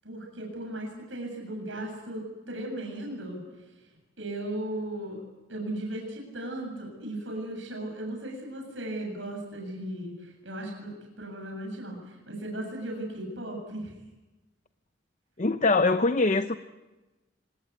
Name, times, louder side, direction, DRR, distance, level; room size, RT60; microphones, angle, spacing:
voice 1, 0.0-3.4 4.2-5.2 5.5-13.9, right 1 dB, 75° right, 1 dB, 7.8 m, -36 dB
voice 2, 15.4-16.5, left 3 dB, 40° left, 10 dB, 0.8 m, -23 dB
26.0 x 21.0 x 8.5 m, 1.1 s
head